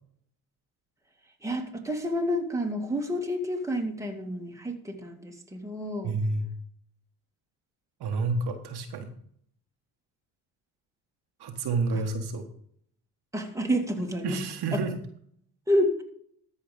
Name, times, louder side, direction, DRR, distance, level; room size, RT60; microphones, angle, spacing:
voice 1, 1.4-6.1 11.9-12.0 13.3-14.4 14.7-14.8 15.7-16.0, equal, 5° right, 1 dB, 2.1 m, -29 dB
voice 2, 6.0-6.5 8.0-9.1 11.4-12.5 14.2-14.9, right 3 dB, 60° right, 4 dB, 1.5 m, -29 dB
13.5 x 5.1 x 5.2 m, 0.64 s
supercardioid pair, 65°, 43 cm